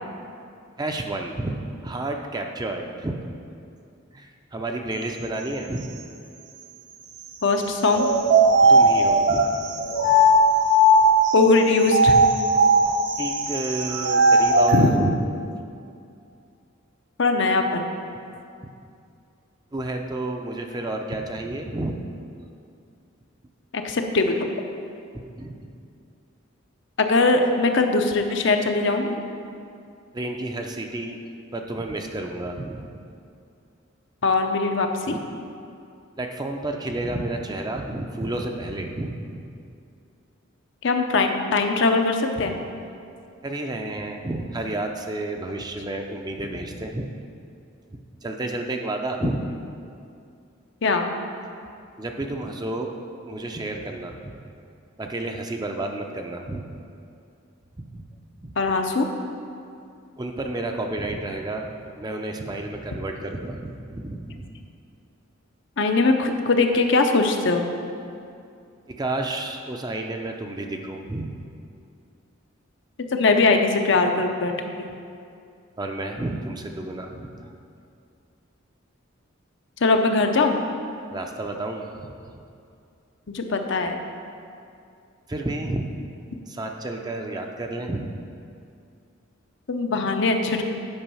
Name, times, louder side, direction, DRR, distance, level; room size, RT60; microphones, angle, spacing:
voice 1, 0.8-3.2 4.1-5.9 8.6-9.5 10.0-10.1 13.2-15.2 19.7-22.0 25.1-25.7 30.1-31.2 31.5-33.0 35.0-35.3 36.2-39.4 43.4-47.1 47.9-49.5 52.0-52.9 53.2-54.4 55.0-56.7 57.8-58.1 58.4-58.5 60.2-64.5 68.9-71.4 75.8-77.3 81.1-82.1 85.3-86.0 86.5-88.1, right 2 dB, 20° right, 3 dB, 0.5 m, -31 dB
voice 2, 7.4-8.1 11.3-12.2 14.7-14.9 17.2-17.9 23.7-24.5 27.0-29.2 34.2-35.1 40.8-42.6 50.8-51.1 58.6-59.1 65.8-67.7 73.1-74.5 79.8-80.5 83.3-84.0 89.7-90.6, left 3 dB, 60° left, 5 dB, 0.6 m, -21 dB
sound 1, 7.9-11.3 11.8-14.8, right 1 dB, 60° right, 0.8 m, -18 dB
8.8 x 5.4 x 5.5 m, 2.5 s
head